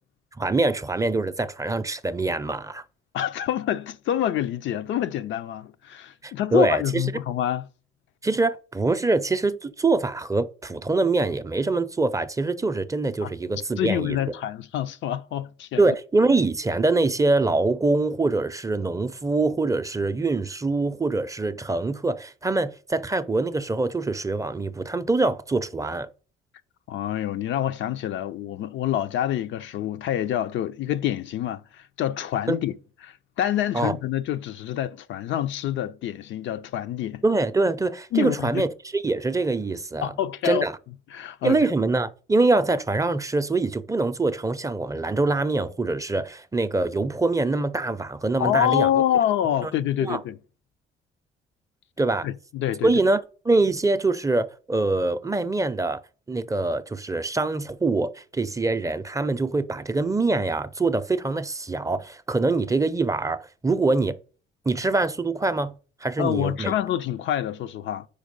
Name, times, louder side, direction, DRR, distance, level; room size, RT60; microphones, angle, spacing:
voice 1, 0.4-2.8 6.2-7.0 8.2-14.2 15.8-26.1 33.7-33.9 37.2-40.1 40.4-40.7 41.4-48.9 49.6-49.7 50.0-50.2 52.0-52.3 52.8-56.0 56.3-64.2 64.7-65.7 66.0-66.7, right 3 dB, 15° right, 0.5 m, -24 dB
voice 2, 3.1-7.6 13.2-15.8 26.9-32.7 33.0-37.2 38.1-38.6 40.0-40.7 41.1-41.6 48.4-50.4 52.2-52.9 66.2-68.1, left 11 dB, 75° left, 0.5 m, -27 dB
5.2 x 4.4 x 5.3 m
cardioid pair, 90°, 20 cm